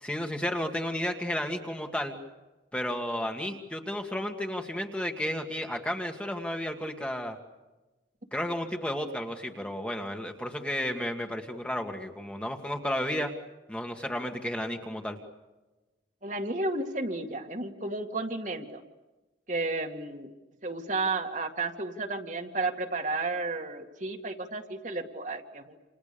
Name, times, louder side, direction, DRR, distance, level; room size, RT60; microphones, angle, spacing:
voice 1, 0.0-2.2 2.7-7.4 8.3-13.3 13.7-15.2, left 1 dB, 5° left, 3 dB, 1.9 m, -32 dB
voice 2, 16.2-18.8 19.5-20.3 20.6-25.8, right 2 dB, 40° right, 4 dB, 2.2 m, -32 dB
29.0 x 28.0 x 7.0 m, 1.1 s
head